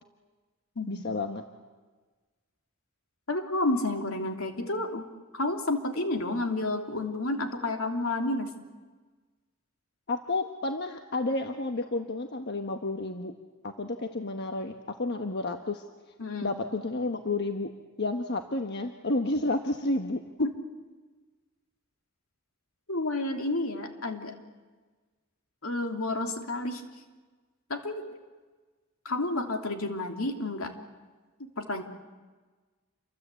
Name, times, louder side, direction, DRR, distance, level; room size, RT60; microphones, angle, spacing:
voice 1, 0.9-1.4 10.1-13.4 13.6-15.8 16.4-17.7 18.0-20.2, left 2 dB, 50° left, 5 dB, 1.3 m, -31 dB
voice 2, 3.3-5.1 5.3-8.5 16.2-16.5 20.4-20.5 22.9-24.4 25.6-26.8 27.7-28.0 29.0-30.7 31.4-31.8, left 2 dB, 70° left, 4 dB, 2.9 m, -30 dB
28.5 x 24.0 x 8.4 m, 1.3 s
head